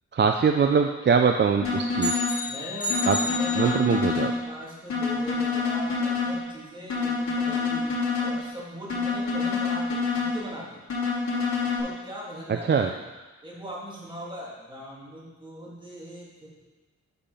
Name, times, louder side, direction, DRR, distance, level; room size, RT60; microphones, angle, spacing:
voice 1, 0.1-2.1 3.1-3.2 3.6-4.3 12.7-12.9, right 6 dB, 40° right, 5 dB, 0.4 m, -22 dB
sound 1, 1.6-2.4 2.9-4.4 4.9-6.4 6.9-8.4 8.9-10.4 10.9-11.8, left 4 dB, 65° left, 2.7 m, -27 dB
sound 2, 2.0-4.2, left 2 dB, 15° left, 1.4 m, -31 dB
voice 2, 2.4-10.8 11.8-13.0 13.4-16.6, equal, 15° right, -5 dB, 2.3 m, -40 dB
6.8 x 5.3 x 5.6 m, 1.2 s
wide cardioid pair, 100°, 29 cm